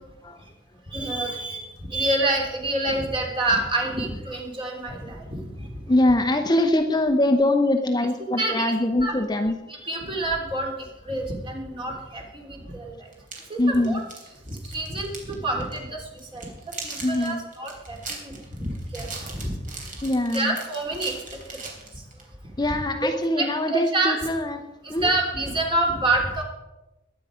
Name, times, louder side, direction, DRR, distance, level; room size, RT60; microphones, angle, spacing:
voice 1, 0.9-5.7 8.4-8.7 9.0-9.1 9.7-10.7 11.0-13.0 13.5-14.0 14.5-16.0 16.3-19.6 20.3-21.1 21.6-21.7 23.4-24.2 24.8-26.4, right 2 dB, 30° right, 0 dB, 3.2 m, -27 dB
voice 2, 5.9-9.6 13.6-14.0 17.0-17.4 20.0-20.6 22.6-24.6 24.9-25.1, left 1 dB, 20° left, 5 dB, 0.8 m, -23 dB
sound 1, 13.1-15.3 15.6-15.8 16.2-22.3, right 4 dB, 45° right, 3.6 m, -39 dB
21.5 x 9.0 x 5.1 m, 1.0 s
head